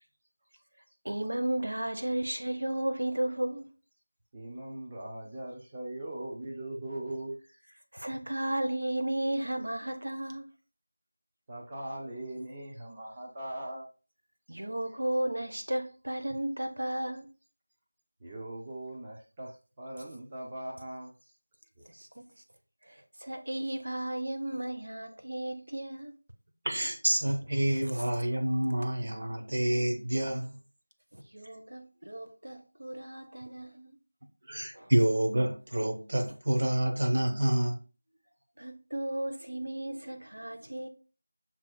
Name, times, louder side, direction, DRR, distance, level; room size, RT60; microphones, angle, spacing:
voice 1, 1.0-3.7 7.9-10.5 14.5-17.2 21.9-22.2 22.8-26.2 27.9-28.0 31.1-34.0 34.7-34.9 38.6-40.9, right 1 dB, 85° right, 0.9 m, -34 dB
voice 2, 4.3-7.4 11.5-13.9 18.2-21.1, right 1 dB, 15° right, 0.4 m, -40 dB
voice 3, 26.6-30.6 34.5-37.8, right 1 dB, 45° right, 0.9 m, -28 dB
7.2 x 2.5 x 2.2 m
figure-of-eight pair, 175°, 0 cm